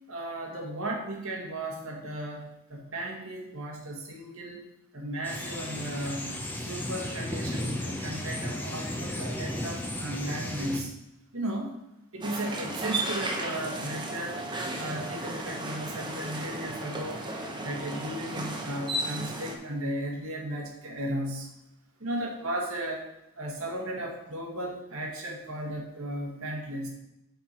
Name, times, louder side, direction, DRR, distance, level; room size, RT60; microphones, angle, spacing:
voice 1, 0.1-4.6 4.9-6.3 6.6-10.9 11.3-11.8 12.1-14.4 14.8-17.3 17.6-21.5 22.0-23.1 23.4-26.9, right 1 dB, 70° right, 1 dB, 1.7 m, -35 dB
sound 1, 5.2-10.8, left 1 dB, 10° left, 0.7 m, -34 dB
sound 2, 12.2-19.6, right 1 dB, 20° right, 0.8 m, -34 dB
7.8 x 4.6 x 4.4 m, 0.85 s
head